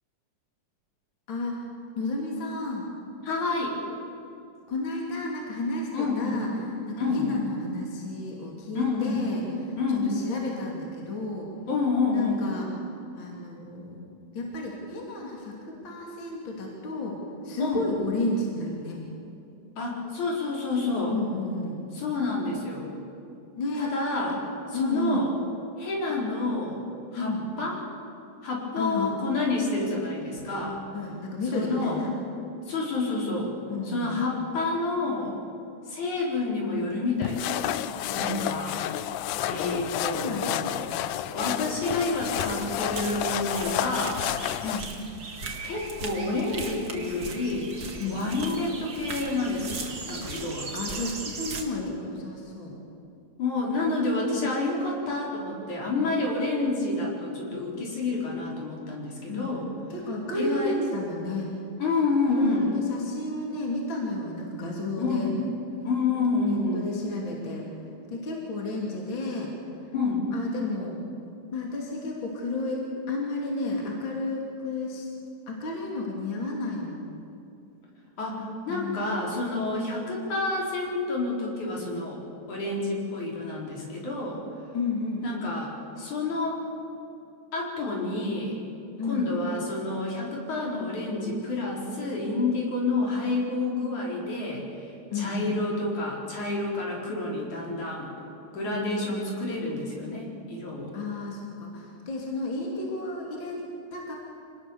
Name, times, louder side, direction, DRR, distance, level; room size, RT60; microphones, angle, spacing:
voice 1, 1.3-1.6 2.0-2.9 4.7-6.5 6.9-11.5 12.1-12.7 12.9-14.1 14.3-17.2 17.4-19.0 21.1-21.8 23.6-23.9 24.3-24.4 24.7-25.2 27.1-27.5 28.8-29.2 30.9-32.1 33.7-34.2 39.5-41.0 44.6-44.9 48.0-48.3 50.7-52.8 59.3-59.6 59.9-61.5 62.3-65.3 66.5-67.6 68.1-69.5 69.8-69.9 70.3-70.9 71.5-75.1 75.5-77.0 78.7-79.0 84.7-85.2 89.0-89.3 95.1-95.5 100.9-103.6 103.9-104.1, left 2 dB, 35° left, -2 dB, 3.4 m, -32 dB
voice 2, 3.2-3.8 5.9-6.4 6.9-7.2 8.7-9.2 9.8-10.1 11.7-12.4 17.6-17.8 19.8-21.1 21.9-22.9 23.8-24.4 24.7-25.3 25.8-26.8 27.1-27.8 28.4-30.8 31.5-32.0 32.7-33.5 33.8-35.3 35.9-37.8 38.1-38.8 39.5-40.6 41.3-44.3 45.6-47.7 48.1-50.7 53.4-59.7 60.3-60.8 61.8-62.8 65.0-65.4 65.8-66.8 69.9-70.3 78.2-82.2 82.5-84.4 85.2-86.6 87.5-88.6 89.1-98.1 98.5-100.9, left 3 dB, 55° left, -2 dB, 5.5 m, -29 dB
sound 1, 37.2-44.8, left 12 dB, 75° left, 2.0 m, -30 dB
sound 2, 42.1-51.6, right 3 dB, 35° right, 2.0 m, -38 dB
26.5 x 19.0 x 7.1 m, 2.7 s
omnidirectional pair, 4.0 m